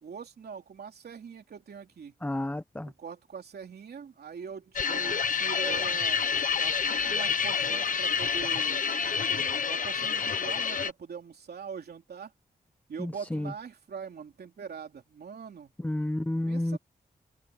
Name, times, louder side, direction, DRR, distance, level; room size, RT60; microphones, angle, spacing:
voice 1, 0.0-2.1 2.9-6.2 6.6-8.9 9.2-12.3 12.9-15.7 16.5-16.8, right 6 dB, 85° right, 3.3 m, -42 dB
voice 2, 2.2-2.9 13.0-13.5 15.8-16.8, left 1 dB, 10° left, 1.2 m, -31 dB
sound 1, 4.8-10.9, left 6 dB, 55° left, 1.2 m, -28 dB
wide cardioid pair, 140°, 16 cm